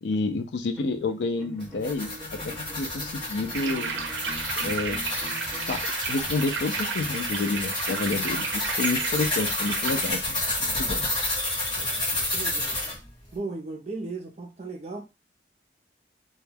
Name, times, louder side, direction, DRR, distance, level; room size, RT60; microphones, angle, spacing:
voice 1, 0.0-2.1 2.4-4.0 4.6-5.0 5.7-5.8 6.1-11.1, left 3 dB, 75° left, 0.4 m, -29 dB
sound 1, 0.7-5.8, left 1 dB, ahead, 0.9 m, -44 dB
sound 2, 1.6-13.0, left 2 dB, 25° left, 0.9 m, -30 dB
sound 3, 3.5-10.1, right 5 dB, 90° right, 0.4 m, -33 dB
voice 2, 11.8-12.8 13.3-15.0, right 3 dB, 35° right, 0.5 m, -37 dB
2.2 x 2.2 x 3.2 m
head